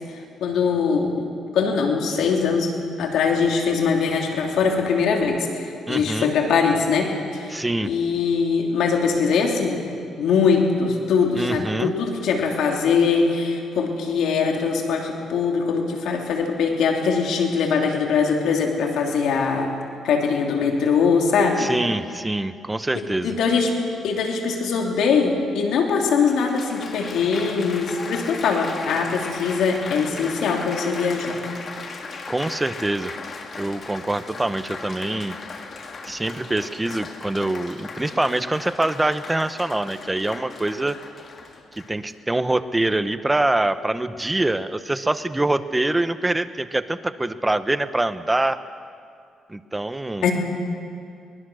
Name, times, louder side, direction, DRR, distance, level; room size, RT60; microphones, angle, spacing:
voice 1, 0.4-2.7 3.0-9.9 10.2-19.7 20.0-21.7 23.2-23.7 24.0-31.4 50.2-50.3, left 5 dB, 80° left, 1 dB, 3.5 m, -22 dB
voice 2, 5.9-6.3 7.5-7.9 11.4-11.9 21.6-23.3 32.3-33.2 33.6-35.4 36.1-41.0 41.7-48.6 49.5-50.2, right 2 dB, 15° right, 11 dB, 1.0 m, -24 dB
Applause, 25.5-25.6 26.2-42.1 42.8-43.2, left 4 dB, 45° left, 2.4 m, -37 dB
23.0 x 20.0 x 6.4 m, 2.4 s
cardioid pair, 90°, 0 cm